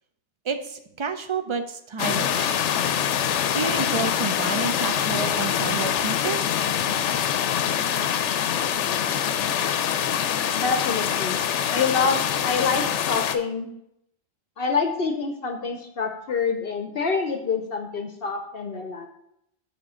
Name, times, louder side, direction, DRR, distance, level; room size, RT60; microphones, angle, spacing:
voice 1, 0.4-2.6 3.5-6.4, right 5 dB, 45° right, 8 dB, 0.4 m, -30 dB
sound 1, 2.0-13.4, left 9 dB, 90° left, 0.9 m, -24 dB
voice 2, 10.5-11.4 11.7-12.2 12.4-13.7 14.6-19.1, left 5 dB, 60° left, 6 dB, 0.8 m, -26 dB
7.3 x 3.6 x 6.1 m, 0.77 s
omnidirectional pair, 1.2 m